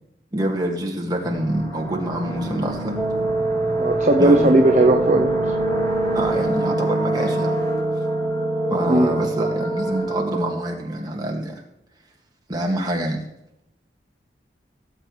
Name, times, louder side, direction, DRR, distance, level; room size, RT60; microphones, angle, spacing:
voice 1, 0.3-3.0 4.2-4.6 6.1-7.5 8.7-11.5 12.5-13.2, right 1 dB, 25° right, 0 dB, 2.1 m, -26 dB
sound 1, 1.2-11.0, equal, 20° left, 4.1 m, -30 dB
Wind instrument woodwind instrument, 3.0-10.8, right 3 dB, ahead, 0.4 m, -25 dB
voice 2, 3.8-5.4 8.9-9.1, right 1 dB, 40° right, 3 dB, 0.7 m, -17 dB
17.0 x 7.9 x 3.3 m, 0.83 s
head